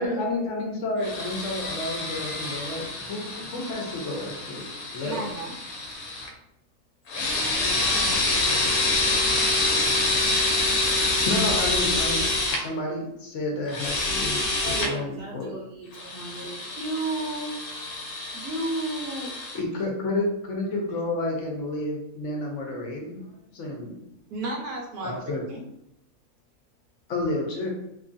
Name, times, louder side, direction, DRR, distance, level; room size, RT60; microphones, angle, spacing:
voice 1, 0.0-5.3 11.3-15.6 19.5-23.2 23.5-24.0 25.0-25.4 27.1-27.7, left 2 dB, 65° left, 0 dB, 0.9 m, -30 dB
sound 1, 1.0-6.3 7.1-12.6 13.7-14.9 15.9-19.6, left 2 dB, 90° left, 1.1 m, -27 dB
voice 2, 5.0-5.5 16.8-17.6 18.3-19.3 24.3-25.6, right 2 dB, 85° right, 0 dB, 1.2 m, -32 dB
voice 3, 7.3-8.6 14.6-16.6, right 2 dB, 45° right, -4 dB, 0.7 m, -38 dB
2.9 x 2.3 x 2.5 m, 0.80 s
omnidirectional pair, 1.5 m